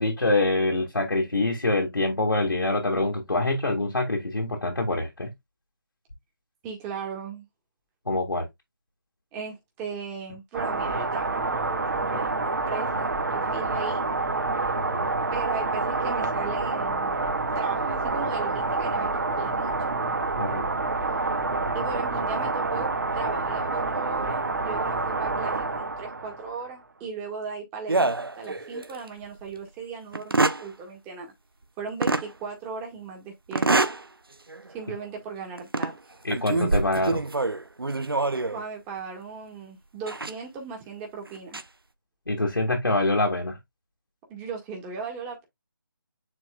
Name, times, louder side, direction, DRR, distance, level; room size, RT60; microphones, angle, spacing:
voice 1, 0.0-5.3 8.1-8.5 14.9-15.1 20.4-20.7 36.2-37.2 42.3-43.6, left 2 dB, 80° left, 2.4 m, -25 dB
voice 2, 6.6-7.5 9.3-14.1 15.3-17.1 17.6-20.0 21.7-31.3 31.8-33.7 34.7-36.0 38.5-41.6 44.3-45.4, right 5 dB, 15° right, 1.9 m, -37 dB
sound 1, 10.5-26.6, right 3 dB, 55° right, 2.0 m, -27 dB
sound 2, 27.9-29.0 29.4-29.5 30.1-30.7 32.0-32.3 33.5-34.0 34.5-34.7 35.6-35.9 36.3-38.6 40.1-40.3 41.3-41.6, right 3 dB, 80° right, 0.9 m, -25 dB
9.6 x 4.3 x 2.4 m
figure-of-eight pair, 155°, 12 cm